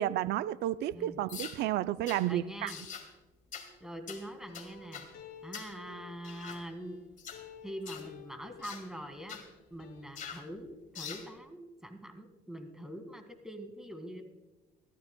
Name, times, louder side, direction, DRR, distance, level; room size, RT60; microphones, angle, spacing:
voice 1, 0.0-2.7, right 13 dB, 75° right, 0.5 m, -31 dB
sound 1, 1.3-1.6 2.1-2.2 2.7-3.1 3.5-3.7 4.1-4.2 4.5-5.1 5.5-5.7 6.2-6.6 7.2-7.4 7.9-8.1 8.6-8.8 9.3-9.5 10.2-10.4 10.9-11.3, left 7 dB, 50° left, 2.3 m, -44 dB
voice 2, 2.2-2.8 3.8-5.1 5.4-7.0 7.6-14.2, equal, 5° right, 1.9 m, -44 dB
sound 2, 4.5-7.1 7.3-9.5 9.8-10.1, left 7 dB, 70° left, 2.2 m, -53 dB
22.5 x 14.5 x 2.2 m
cardioid pair, 110°, 17 cm